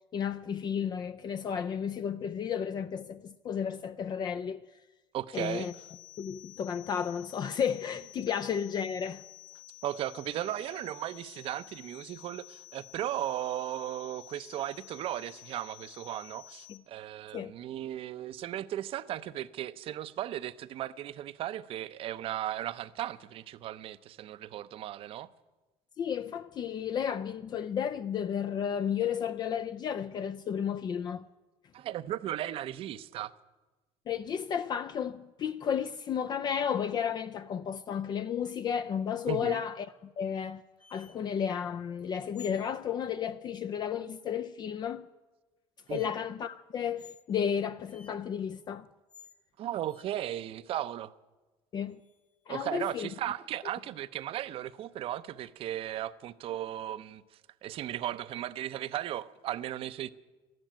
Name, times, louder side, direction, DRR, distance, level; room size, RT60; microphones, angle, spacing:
voice 1, 0.1-4.6 5.3-5.7 6.2-9.2 16.7-16.8 17.3-17.5 26.0-31.3 34.1-40.6 40.9-45.1 45.9-48.9 51.7-52.0 52.5-53.1, left 8 dB, 40° left, 0.5 m, -33 dB
voice 2, 5.1-5.7 9.8-25.3 31.7-33.3 39.3-39.6 45.9-46.1 49.6-51.1 52.5-57.2 57.6-60.1, right 12 dB, 55° right, 0.6 m, -36 dB
sound 1, 5.3-16.8, left 19 dB, 85° left, 1.4 m, -52 dB
sound 2, 40.8-41.2 42.3-42.7 44.9-45.0 45.9-46.1 47.0-47.3 47.9-48.1 49.1-49.4 49.8-50.0 51.9-52.5 55.4-55.5, left 6 dB, 15° left, 1.0 m, -53 dB
12.5 x 12.0 x 9.0 m
cardioid pair, 120°, 11 cm